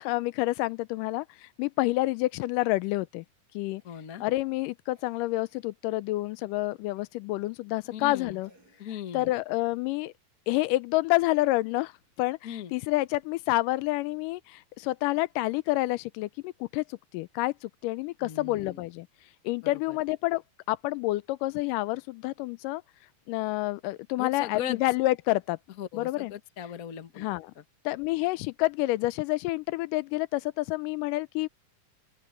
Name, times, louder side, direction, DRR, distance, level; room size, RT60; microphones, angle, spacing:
voice 1, 0.1-3.2 3.5-3.8 4.2-8.5 9.1-10.1 10.5-11.9 12.2-16.8 17.1-19.1 19.4-20.4 20.7-22.8 23.3-25.6 25.9-26.3 27.2-27.5 27.9-31.5, left 19 dB, 85° left, 2.2 m, -28 dB
voice 2, 3.8-4.2 7.9-8.4 8.8-9.3 12.4-12.7 18.2-18.8 19.9-20.0 24.2-24.8 25.8-27.3, left 10 dB, 65° left, 0.8 m, -38 dB
Cough, 3.8-4.2 4.9-5.7 6.9-7.2 8.4-9.5 12.6-13.4 14.8-14.9, right 1 dB, 25° right, 8.4 m, -65 dB
open air
omnidirectional pair, 3.8 m